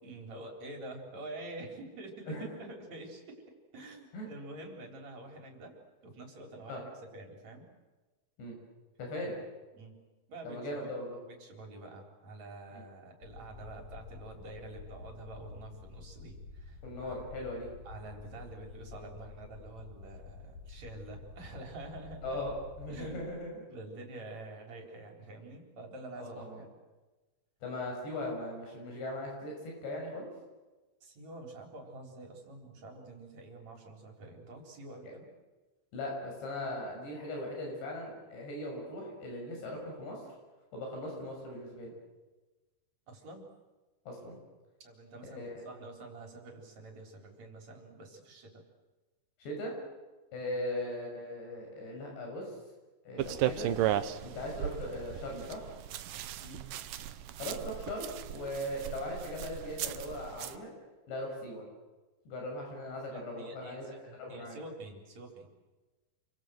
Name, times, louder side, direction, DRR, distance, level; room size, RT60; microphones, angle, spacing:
voice 1, 0.0-3.4 3.7-5.7 6.0-7.7 9.7-10.0 10.3-10.9 11.2-17.2 17.8-22.4 22.9-23.3 23.7-26.7 31.0-35.3 43.1-43.5 44.8-48.6 50.4-50.6 56.4-56.7 63.0-65.5, right 2 dB, 40° right, 2 dB, 4.9 m, -47 dB
voice 2, 9.0-9.4 10.4-11.2 12.7-12.8 16.8-17.7 22.2-23.5 26.2-26.6 27.6-30.3 35.9-40.2 40.7-41.9 44.1-44.4 45.2-45.5 49.4-49.8 50.3-52.5 53.1-53.7 54.2-55.7 57.4-60.7 61.1-61.6 62.3-63.9 64.2-64.6, left 1 dB, 70° left, 0 dB, 8.6 m, -39 dB
sound 1, 13.2-23.2, left 4 dB, 55° left, 5.3 m, -49 dB
sound 2, 53.2-60.6, right 11 dB, 75° right, 2.0 m, -36 dB
29.0 x 24.0 x 7.9 m, 1.2 s
omnidirectional pair, 5.1 m